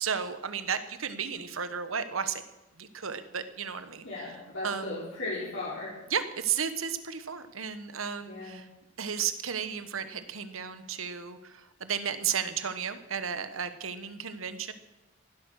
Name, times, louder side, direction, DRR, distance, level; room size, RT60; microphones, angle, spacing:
voice 1, 0.0-2.4 2.8-4.1 4.6-5.0 6.1-8.6 9.0-14.7, right 7 dB, 90° right, 11 dB, 1.3 m, -33 dB
voice 2, 4.0-6.0 8.3-8.6, left 2 dB, 65° left, -7 dB, 4.5 m, -36 dB
15.5 x 12.0 x 6.5 m, 0.99 s
head